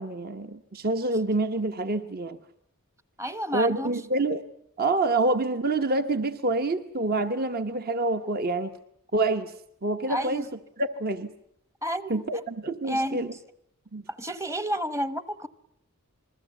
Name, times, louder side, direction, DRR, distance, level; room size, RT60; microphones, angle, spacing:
voice 1, 0.0-2.4 3.5-4.4 4.8-8.7 9.1-9.5 9.8-10.4 10.8-11.3 12.1-13.3 13.9-14.0, right 2 dB, 45° right, 1.0 m, -27 dB
voice 2, 3.2-3.9 10.1-10.5 11.8-12.2 12.8-13.3 14.1-15.5, equal, 15° right, 0.9 m, -30 dB
27.5 x 21.0 x 8.2 m
head